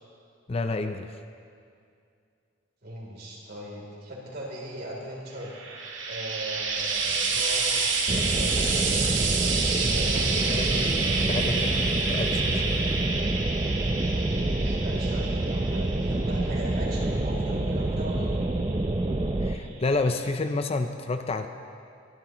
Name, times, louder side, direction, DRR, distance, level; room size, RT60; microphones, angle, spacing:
voice 1, 0.5-1.1 10.1-11.7 12.0-12.8 19.4-21.5, left 3 dB, 30° left, 7 dB, 0.5 m, -30 dB
voice 2, 2.8-5.5 6.1-7.9 8.3-9.1 9.9-10.8 11.1-11.9 14.6-18.4, right 1 dB, 55° right, -3 dB, 3.4 m, -39 dB
Frying (food), 5.4-18.8 19.8-19.9, right 4 dB, 80° right, 1.8 m, -29 dB
sound 1, 8.1-19.6, right 2 dB, 25° right, 0.5 m, -27 dB
22.5 x 11.5 x 3.1 m, 2.4 s
head